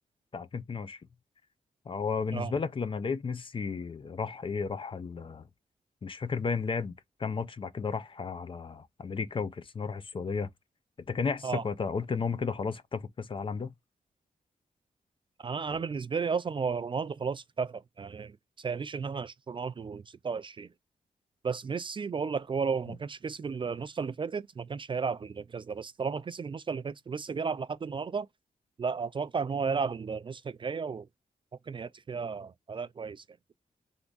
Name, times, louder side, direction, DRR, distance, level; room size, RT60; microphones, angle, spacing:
voice 1, 0.3-1.0 1.9-5.4 6.0-6.9 7.2-10.5 11.1-13.7 15.7-15.8, left 5 dB, 35° left, 0.5 m, -33 dB
voice 2, 15.4-20.7 21.4-28.3 28.8-31.1 31.7-33.2, right 5 dB, 35° right, 0.3 m, -33 dB
3.5 x 3.5 x 3.9 m
wide cardioid pair, 115°, 15 cm